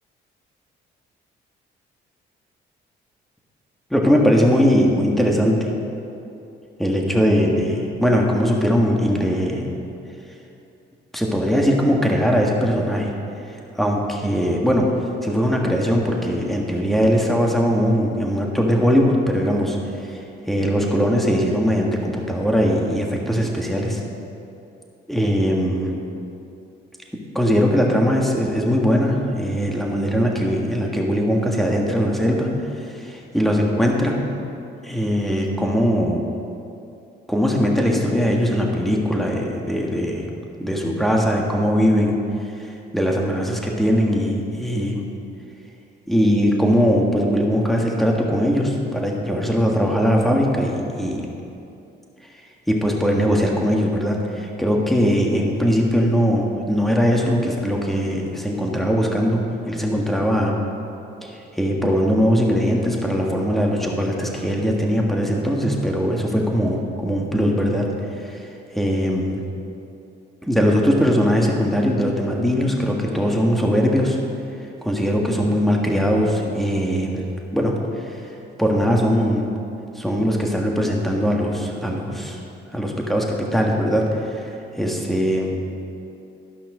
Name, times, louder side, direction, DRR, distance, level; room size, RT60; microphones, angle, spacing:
voice 1, 3.9-5.7 6.8-9.7 11.1-13.1 13.5-14.9 15.2-24.0 25.1-25.9 27.3-34.1 34.8-36.2 37.3-40.3 40.6-42.2 42.6-45.0 46.1-51.3 52.7-60.5 61.2-67.9 68.1-68.5 68.7-69.4 70.4-74.2 74.8-77.2 77.5-78.2 78.6-79.4 79.9-82.4 82.7-85.6, equal, ahead, -1 dB, 1.7 m, -20 dB
13.0 x 5.8 x 6.2 m, 2.7 s
cardioid pair, 90°, 20 cm